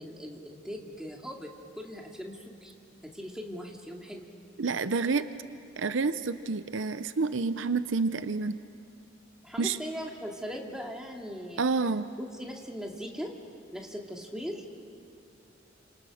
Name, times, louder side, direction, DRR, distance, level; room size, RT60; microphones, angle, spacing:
voice 1, 0.0-1.5 1.8-2.7 3.0-4.2 9.4-11.6 12.2-13.3 13.7-14.6, equal, 5° right, 0 dB, 2.5 m, -39 dB
voice 2, 4.6-5.2 5.8-8.6 9.6-9.8 11.6-12.1, right 4 dB, 70° right, 12 dB, 0.7 m, -28 dB
29.5 x 27.0 x 6.4 m, 2.6 s
head